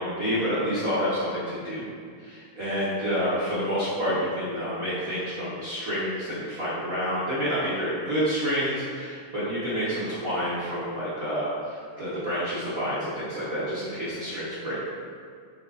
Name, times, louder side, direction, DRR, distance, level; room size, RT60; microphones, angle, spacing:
voice 1, 0.0-1.8 2.2-14.8, equal, 45° right, -11 dB, 1.2 m, -28 dB
6.7 x 4.0 x 4.1 m, 2.1 s
omnidirectional pair, 3.3 m